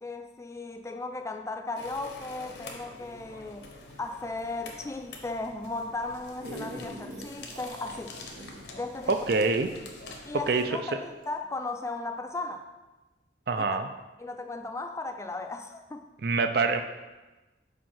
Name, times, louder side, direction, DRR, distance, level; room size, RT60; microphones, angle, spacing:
voice 1, 0.0-3.6 4.0-8.2 8.7-9.2 10.2-12.7 13.6-13.8 14.2-16.1, left 3 dB, 15° left, 6 dB, 0.3 m, -36 dB
sound 1, 1.8-10.7, left 2 dB, 65° left, 0.9 m, -46 dB
sound 2, 6.0-10.7 11.2-11.3, right 1 dB, 85° right, 1.2 m, -44 dB
voice 2, 9.3-9.7 10.5-10.6 13.5-13.9 16.2-16.8, right 4 dB, 55° right, 8 dB, 0.5 m, -25 dB
5.1 x 4.5 x 5.7 m, 1.1 s
head